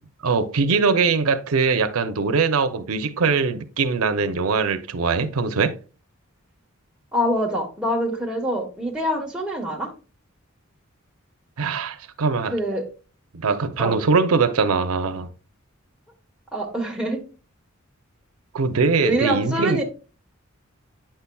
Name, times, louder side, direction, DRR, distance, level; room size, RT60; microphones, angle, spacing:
voice 1, 0.2-5.8 11.6-12.6 13.3-15.3 18.5-19.8, right 4 dB, 85° right, 0.7 m, -22 dB
voice 2, 7.1-9.9 12.5-12.9 13.8-14.0 16.5-17.2 19.0-19.8, equal, 5° right, 1.3 m, -25 dB
8.8 x 5.6 x 2.3 m
head